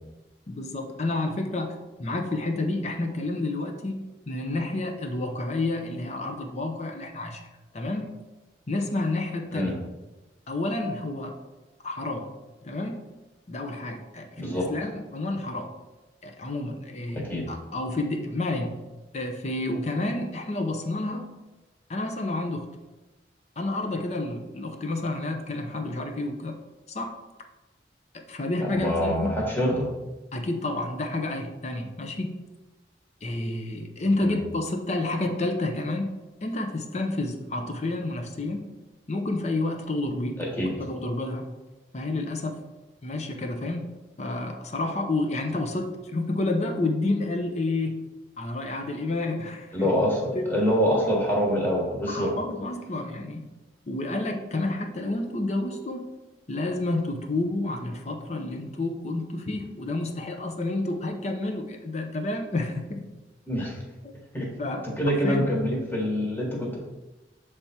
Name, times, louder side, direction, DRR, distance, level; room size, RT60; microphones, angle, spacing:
voice 1, 0.5-7.5 7.7-8.2 8.7-9.8 10.5-11.4 11.8-12.3 12.6-13.1 13.5-15.7 16.2-18.8 19.1-21.3 21.9-22.7 23.6-26.6 26.9-27.2 28.1-29.3 30.3-32.4 33.2-36.1 36.4-38.7 39.1-40.4 40.7-41.5 41.9-42.6 43.0-43.9 44.2-48.1 48.4-49.9 50.3-50.5 52.1-53.4 53.9-56.1 56.5-63.0 64.0-64.1 64.6-64.9 65.2-65.5, left 2 dB, 40° left, 4 dB, 0.6 m, -30 dB
voice 2, 14.4-14.7 17.1-17.5 28.6-29.9 34.2-34.4 40.4-40.7 49.7-52.3 63.5-63.8 64.3-64.5 64.8-66.8, equal, 10° left, -2 dB, 1.3 m, -25 dB
7.0 x 3.4 x 4.2 m, 1.1 s
head